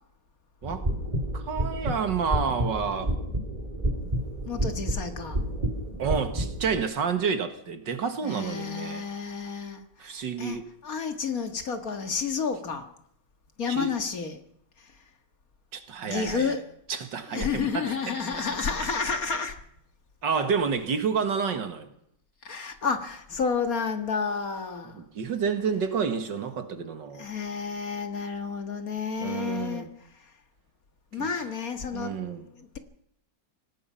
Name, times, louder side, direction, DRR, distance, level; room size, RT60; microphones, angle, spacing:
sound 1, 0.6-6.8, right 1 dB, 20° right, 2.9 m, -30 dB
voice 1, 1.3-3.1 6.0-9.0 10.0-10.7 13.7-14.0 15.7-16.6 16.9-18.1 20.2-21.9 24.9-27.3 29.2-29.9 31.2-31.4 31.9-32.5, right 6 dB, 80° right, 2.4 m, -29 dB
voice 2, 4.4-5.4 8.2-12.9 13.6-14.4 16.1-16.8 17.3-19.6 22.4-25.1 27.1-29.9 31.1-32.2 32.6-32.8, left 5 dB, 50° left, 2.2 m, -31 dB
25.5 x 18.5 x 5.7 m
omnidirectional pair, 1.9 m